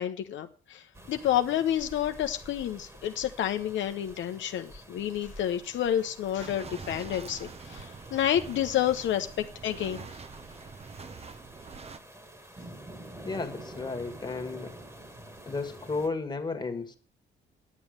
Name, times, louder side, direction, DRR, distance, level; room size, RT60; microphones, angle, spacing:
voice 1, 0.0-10.1, left 11 dB, 75° left, 6 dB, 0.9 m, -29 dB
sound 1, 0.9-16.1, right 1 dB, 15° right, 1.8 m, -48 dB
sound 2, 6.4-12.0, right 5 dB, 30° right, 0.9 m, -45 dB
voice 2, 13.2-14.8 15.5-17.0, left 3 dB, 20° left, 5 dB, 1.8 m, -33 dB
10.0 x 7.2 x 6.6 m, 0.41 s
cardioid pair, 90°, 20 cm